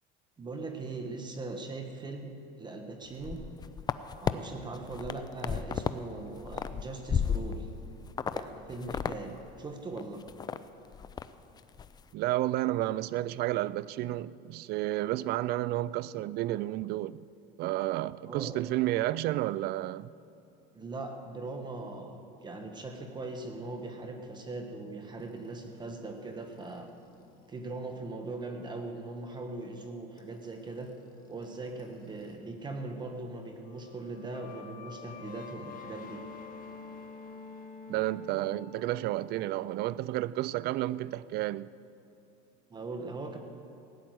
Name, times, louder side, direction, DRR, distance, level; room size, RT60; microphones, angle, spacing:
voice 1, 0.4-3.4 4.2-7.7 8.3-10.2 18.3-18.7 20.7-26.9 27.5-30.9 31.3-36.2 42.7-43.4, right 3 dB, 20° right, 1.3 m, -40 dB
sound 1, 3.1-4.3 4.8-6.0 6.3-7.8 8.2-8.4 8.7-9.2 9.4-9.5 10.0-10.6 10.9-11.3 11.6-11.9, left 7 dB, 20° left, 0.4 m, -32 dB
voice 2, 12.1-17.3 17.6-20.1 37.9-41.7, right 15 dB, 50° right, 0.4 m, -31 dB
sound 2, 25.2-32.4 32.6-39.1, left 5 dB, 40° left, 1.8 m, -50 dB
17.0 x 10.0 x 7.8 m
cardioid pair, 135°, 21 cm